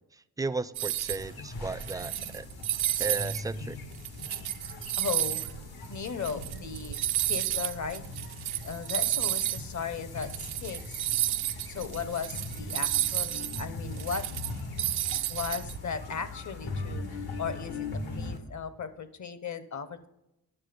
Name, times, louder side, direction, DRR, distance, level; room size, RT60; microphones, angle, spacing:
voice 1, 0.1-2.5 3.0-3.8, right 3 dB, 10° right, 13 dB, 0.4 m, -35 dB
sound 1, 0.7-1.3 1.7-3.4 3.8-9.6 9.9-10.0 10.2-15.8, right 13 dB, 85° right, 0.5 m, -31 dB
sound 2, 1.2-18.4, left 2 dB, 80° left, 1.4 m, -40 dB
voice 2, 5.0-5.6 5.9-8.0 8.6-11.0 11.7-14.2 15.3-20.1, left 6 dB, 50° left, 13 dB, 0.8 m, -36 dB
9.9 x 6.4 x 5.1 m, 0.90 s
cardioid pair, 75°, 37 cm